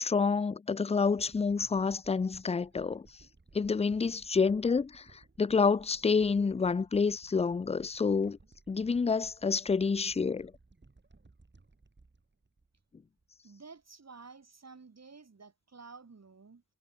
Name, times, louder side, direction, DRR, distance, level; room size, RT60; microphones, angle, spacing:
voice 1, 0.0-3.1 3.5-8.4 8.7-10.5, left 5 dB, 20° left, 0.3 m, -28 dB
sound 1, 1.0-13.4 13.8-13.9, right 3 dB, 30° right, 4.9 m, -61 dB
voice 2, 13.4-16.6, right 4 dB, 45° right, 6.4 m, -52 dB
wide cardioid pair, 120°, 35 cm